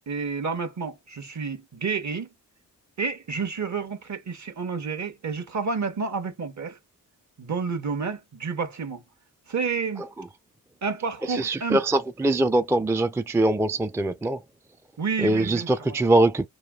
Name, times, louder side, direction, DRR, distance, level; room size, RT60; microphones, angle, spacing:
voice 1, 0.1-2.3 3.0-6.8 7.4-9.0 9.5-10.0 10.8-11.8 15.0-16.0, right 5 dB, 50° right, 1.1 m, -30 dB
voice 2, 11.3-14.4 15.2-16.5, right 2 dB, 10° right, 0.4 m, -22 dB
3.1 x 2.3 x 2.3 m
supercardioid pair, 40°, 37 cm